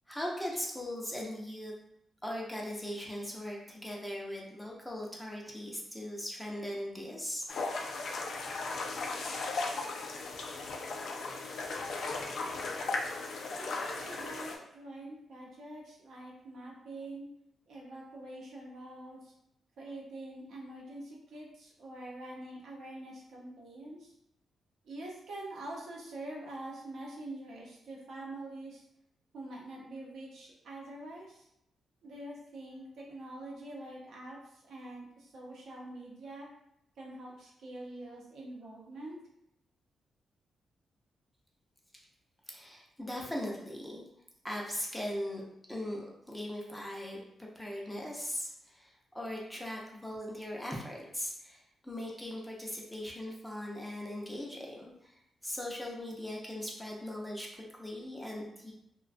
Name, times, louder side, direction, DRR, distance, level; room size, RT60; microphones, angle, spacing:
voice 1, 0.1-1.7 2.2-7.5 42.5-44.0 44.4-45.4 45.7-58.7, left 1 dB, 5° left, -2 dB, 0.5 m, -39 dB
sound 1, 7.5-14.6, left 3 dB, 70° left, 0.3 m, -36 dB
voice 2, 13.6-17.3 17.7-19.3 19.8-24.1 24.8-28.8 29.3-31.5 32.0-36.5 37.0-39.2, right 1 dB, 80° right, -3 dB, 0.7 m, -45 dB
2.3 x 2.2 x 2.5 m, 0.78 s
cardioid pair, 80°, 0 cm